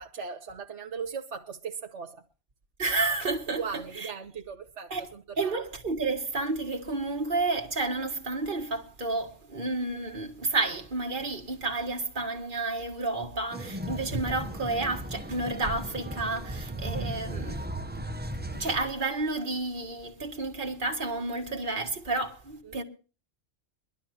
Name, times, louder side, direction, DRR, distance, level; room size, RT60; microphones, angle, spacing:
voice 1, 0.0-2.2 3.5-5.6 22.6-22.8, right 6 dB, 85° right, 1.4 m, -38 dB
voice 2, 2.8-4.1 4.9-5.1 5.4-17.6 18.5-22.8, right 3 dB, 45° right, 1.9 m, -31 dB
sound 1, 13.5-18.7, right 1 dB, 10° right, 0.5 m, -36 dB
22.5 x 12.0 x 2.8 m
omnidirectional pair, 1.2 m